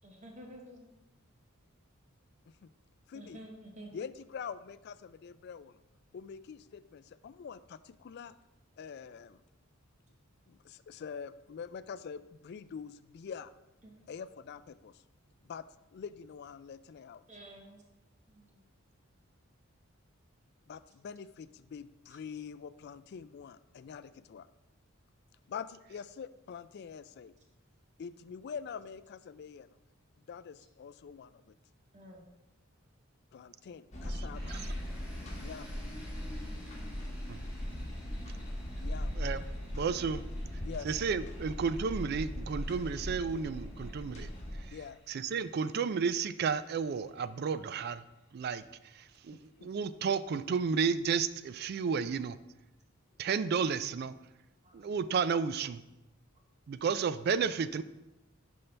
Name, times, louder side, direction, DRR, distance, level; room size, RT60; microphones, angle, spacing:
voice 1, 0.0-0.9 3.1-4.0 13.8-14.0 17.3-17.8 18.3-18.6 22.1-22.2 31.9-32.2 54.6-54.9 56.8-56.9, right 1 dB, 35° right, 1 dB, 1.0 m, -51 dB
voice 2, 3.9-5.8 6.1-8.3 8.8-9.4 10.5-13.5 14.1-15.0 15.4-17.2 20.7-24.5 25.5-27.3 28.0-29.7 30.2-31.5 33.3-34.6 35.3-35.7 38.8-39.1 40.6-40.9 44.7-45.0 49.3-49.7, left 6 dB, 50° left, 15 dB, 0.3 m, -45 dB
sound 1, 33.9-44.7, equal, 35° left, 1.3 m, -39 dB
sound 2, 34.3-49.9, left 1 dB, 10° right, 2.7 m, -59 dB
voice 3, 39.7-40.2 40.9-44.3 45.1-48.0 48.3-48.6 49.0-52.4 53.2-54.1 54.7-55.8 56.7-57.8, right 6 dB, 50° right, 14 dB, 0.3 m, -32 dB
10.0 x 5.4 x 3.3 m, 0.97 s
head